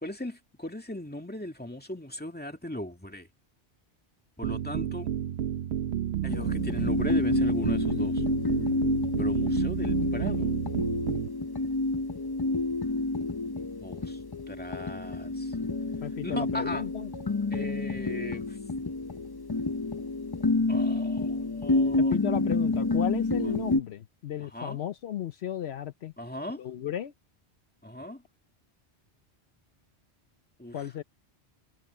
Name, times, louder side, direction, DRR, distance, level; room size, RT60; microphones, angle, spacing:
voice 1, 0.0-3.3 4.4-5.1 6.2-8.2 9.2-10.5 13.8-14.2 14.5-15.5 16.2-16.8 17.5-18.6 20.7-22.2 24.5-24.8 26.2-26.6 27.8-28.2 30.6-30.9, left 1 dB, 10° left, 2.3 m, -38 dB
sound 1, 4.4-11.3, right 10 dB, 70° right, 0.9 m, -31 dB
sound 2, 6.3-23.8, left 2 dB, 25° left, 0.6 m, -29 dB
voice 2, 16.0-17.1 22.0-26.1 26.6-27.1 30.7-31.0, left 10 dB, 70° left, 0.9 m, -35 dB
omnidirectional pair, 1.1 m